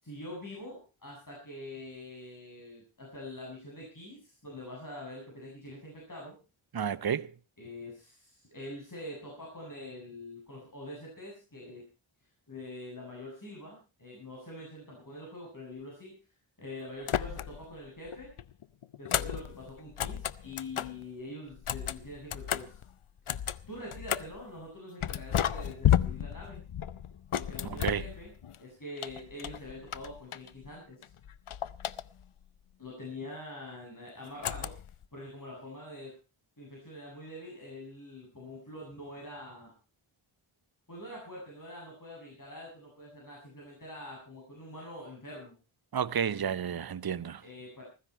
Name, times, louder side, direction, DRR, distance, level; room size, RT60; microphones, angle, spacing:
voice 1, 0.0-6.4 7.6-11.8 12.5-16.1 16.6-18.3 19.0-22.8 23.7-26.6 27.3-31.1 32.8-34.7 35.1-36.1 36.6-39.7 40.9-45.5 47.4-47.8, left 1 dB, 40° left, 7.9 m, -45 dB
voice 2, 6.7-7.3 27.6-28.1 45.9-47.4, right 8 dB, 45° right, 0.7 m, -31 dB
sound 1, 17.0-17.8 18.1-21.0 21.5-24.4 25.0-28.6 29.0-30.7 31.0-32.4 34.4-35.0, left 10 dB, 75° left, 0.7 m, -33 dB
15.5 x 15.0 x 4.5 m
wide cardioid pair, 50°, 50 cm